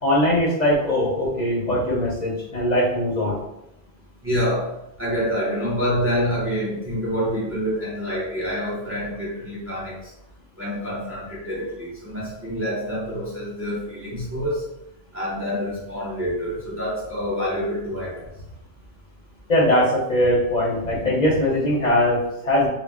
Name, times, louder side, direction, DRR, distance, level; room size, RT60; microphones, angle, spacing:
voice 1, 0.0-3.4 19.5-22.7, left 1 dB, 45° left, -5 dB, 0.7 m, -21 dB
voice 2, 4.2-4.7 5.0-10.0 10.6-14.6 15.1-18.3, equal, 15° right, -5 dB, 0.5 m, -27 dB
2.3 x 2.1 x 3.5 m, 0.84 s
omnidirectional pair, 1.1 m